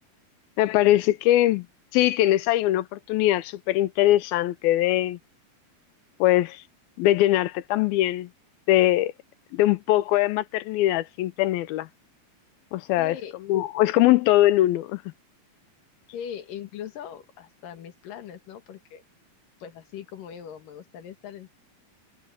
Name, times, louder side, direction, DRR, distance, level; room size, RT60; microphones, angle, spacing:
voice 1, 0.6-1.7 1.9-5.2 6.2-6.6 7.0-8.3 8.7-9.1 9.5-11.9 12.7-13.2 13.5-15.0, left 15 dB, 80° left, 2.6 m, -21 dB
voice 2, 13.0-13.3 16.1-19.0 19.6-21.5, left 8 dB, 65° left, 3.2 m, -40 dB
omnidirectional pair, 4.3 m